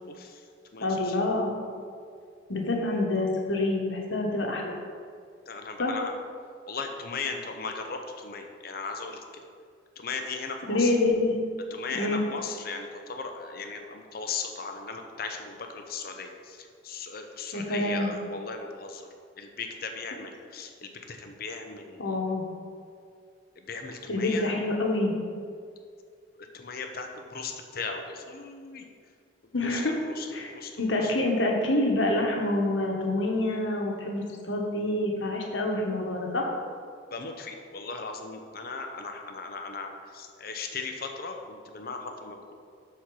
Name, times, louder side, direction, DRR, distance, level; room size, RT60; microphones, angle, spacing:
voice 1, 0.1-0.4 0.7-1.2 5.5-6.1 6.7-9.2 10.0-10.9 11.7-19.1 19.4-22.1 23.6-24.5 26.4-28.9 29.4-29.8 30.2-31.1 37.1-42.5, left 4 dB, 50° left, 4 dB, 0.9 m, -37 dB
voice 2, 0.8-1.5 2.5-4.7 5.8-6.0 10.7-11.3 11.9-12.2 17.5-18.1 22.0-22.5 24.1-25.1 29.5-29.9 30.3-30.5 30.8-36.5, left 2 dB, 80° left, 0 dB, 1.4 m, -27 dB
12.0 x 4.4 x 4.8 m, 2.2 s
head